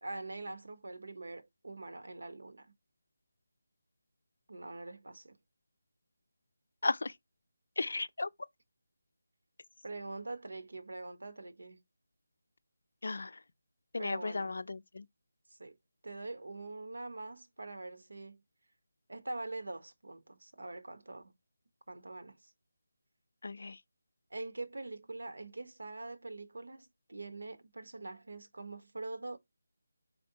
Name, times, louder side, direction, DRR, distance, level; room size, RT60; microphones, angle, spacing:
voice 1, 0.0-2.7 4.5-5.4 9.8-11.8 14.0-14.5 15.5-15.8 16.0-18.4 19.1-21.3 21.9-22.5 24.3-29.4, right 2 dB, 80° right, 1.0 m, -44 dB
voice 2, 6.8-7.1 7.8-8.3 13.0-13.3 13.9-15.1 23.4-23.8, left 3 dB, 55° left, 0.4 m, -35 dB
4.4 x 4.1 x 2.9 m
figure-of-eight pair, 180°, 0 cm